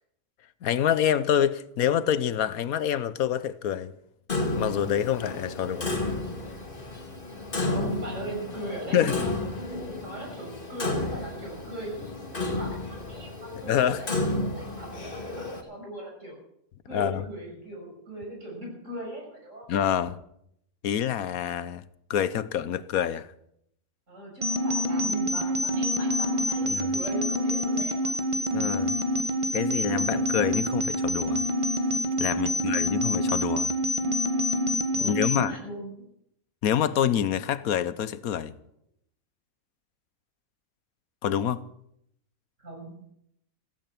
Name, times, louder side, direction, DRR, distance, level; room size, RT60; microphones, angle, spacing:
voice 1, 0.6-3.9 4.6-5.9 8.9-9.3 13.7-14.0 16.9-17.2 19.7-20.2 20.8-21.8 22.1-23.3 26.7-27.0 28.5-29.0 29.5-31.4 32.2-33.7 35.0-35.5 36.6-38.5 41.2-41.6, left 9 dB, 90° left, 1.3 m, -26 dB
Clock, 4.3-15.6, left 2 dB, 40° left, 2.2 m, -32 dB
voice 2, 7.6-14.1 14.4-16.3 16.9-19.7 24.1-28.3 32.3-32.7 34.9-35.9 42.6-43.0, right 1 dB, 60° right, 6.6 m, -39 dB
sound 1, 24.4-35.4, left 1 dB, 20° right, 1.6 m, -27 dB
15.5 x 15.5 x 5.9 m
omnidirectional pair, 1.5 m